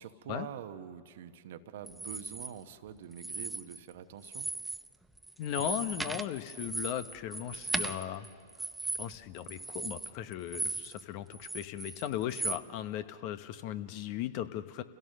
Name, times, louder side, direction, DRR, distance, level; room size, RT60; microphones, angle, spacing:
voice 1, 0.0-4.5, right 9 dB, 65° right, 10 dB, 1.0 m, -45 dB
sound 1, 1.9-2.5 3.1-3.9 4.2-4.9 5.2-11.0 11.3-12.6, right 2 dB, 5° right, 0.7 m, -37 dB
voice 2, 5.4-8.3 9.0-14.8, left 11 dB, 50° left, 11 dB, 1.1 m, -37 dB
29.5 x 16.5 x 6.6 m, 2.1 s
hypercardioid pair, 100°, 0 cm